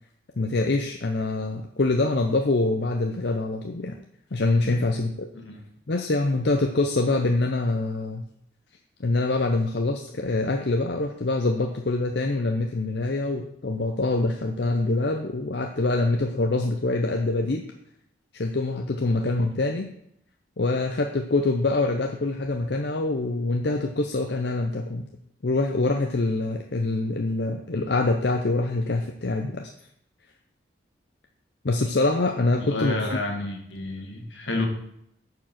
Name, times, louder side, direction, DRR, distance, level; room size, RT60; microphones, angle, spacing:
voice 1, 0.4-4.0 4.3-5.3 5.9-8.3 9.0-17.6 18.3-19.9 20.6-25.0 25.4-29.7 31.6-32.9, left 2 dB, 65° left, 3 dB, 0.7 m, -25 dB
voice 2, 5.3-5.6 32.5-34.7, left 2 dB, 80° left, 3 dB, 1.8 m, -30 dB
9.5 x 4.9 x 5.8 m, 0.73 s
head